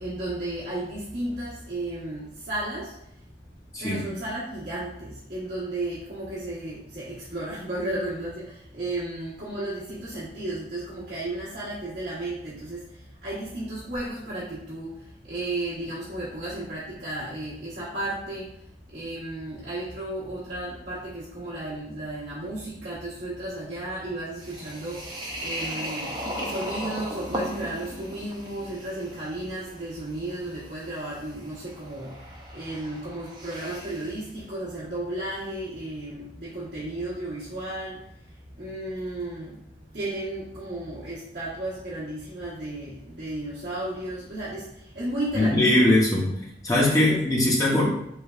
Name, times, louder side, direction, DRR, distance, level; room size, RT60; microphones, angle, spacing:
voice 1, 0.0-3.0 3.8-18.5 18.9-25.0 25.4-38.1 38.6-39.6 39.9-45.9 47.1-47.2 47.7-47.9, right 1 dB, 60° right, -11 dB, 1.0 m, -34 dB
sound 1, 24.4-34.2, equal, 25° right, 0.5 m, -37 dB
voice 2, 45.3-46.3 46.6-47.9, left 1 dB, 20° left, -4 dB, 0.8 m, -20 dB
3.3 x 3.1 x 2.4 m, 0.77 s
head